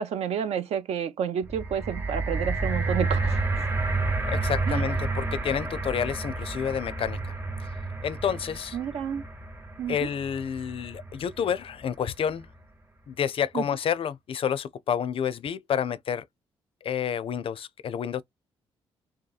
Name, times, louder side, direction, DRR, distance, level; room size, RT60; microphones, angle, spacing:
voice 1, 0.0-3.7 4.7-4.8 8.7-9.2 9.8-10.1 13.5-13.6, right 8 dB, 70° right, 0.4 m, -30 dB
sound 1, 1.4-11.7 12.4-12.5, right 3 dB, 15° right, 0.6 m, -30 dB
voice 2, 4.3-7.3 8.0-8.8 9.9-12.5 13.1-16.2 16.8-18.2, left 8 dB, 55° left, 0.4 m, -29 dB
2.8 x 2.2 x 2.3 m
supercardioid pair, 50°, 11 cm